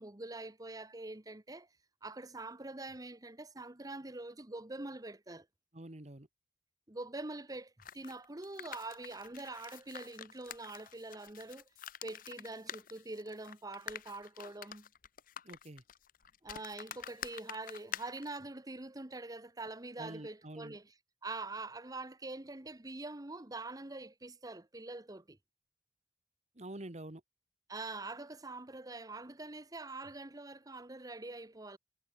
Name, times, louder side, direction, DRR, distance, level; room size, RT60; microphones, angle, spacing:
voice 1, 0.0-1.7 2.0-5.5 6.9-11.6 12.0-14.9 16.4-20.8 21.2-25.4 27.7-31.8, right 2 dB, 20° right, 1.1 m, -44 dB
voice 2, 5.7-6.3 15.4-15.8 20.0-20.8 26.5-27.2, right 1 dB, 40° right, 1.7 m, -47 dB
sound 1, 7.8-18.4, left 9 dB, 50° left, 0.8 m, -48 dB
head